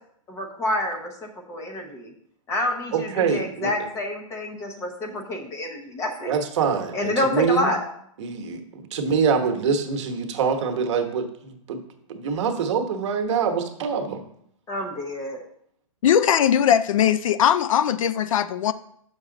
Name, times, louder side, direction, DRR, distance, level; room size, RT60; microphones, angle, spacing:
voice 1, 0.3-2.1 2.5-6.4 6.9-7.8 14.7-15.4, left 1 dB, 15° left, 3 dB, 0.9 m, -28 dB
voice 2, 2.9-3.9 6.3-7.7 8.2-11.8 12.1-14.2, right 6 dB, 55° right, 5 dB, 1.1 m, -25 dB
voice 3, 16.0-18.7, left 9 dB, 70° left, 15 dB, 0.5 m, -20 dB
7.2 x 6.1 x 3.9 m, 0.69 s
hypercardioid pair, 155°, 18 cm